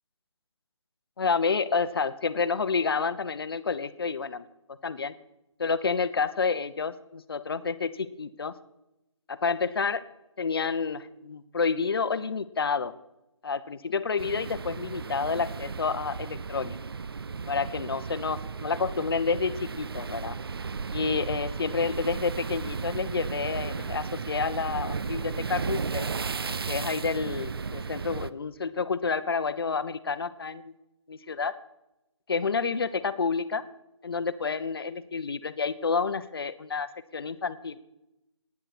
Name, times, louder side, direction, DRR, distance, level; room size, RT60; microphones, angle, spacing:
voice 1, 1.2-5.1 5.6-8.5 9.3-10.0 10.4-12.9 13.4-16.8 17.5-20.4 20.9-26.1 26.7-30.7 31.1-31.5 32.3-33.6 34.0-36.9 37.1-37.8, left 5 dB, 50° left, 13 dB, 0.8 m, -29 dB
sound 1, 14.2-28.3, right 5 dB, 50° right, 0.5 m, -34 dB
18.5 x 9.8 x 4.3 m, 0.91 s
figure-of-eight pair, 165°, 16 cm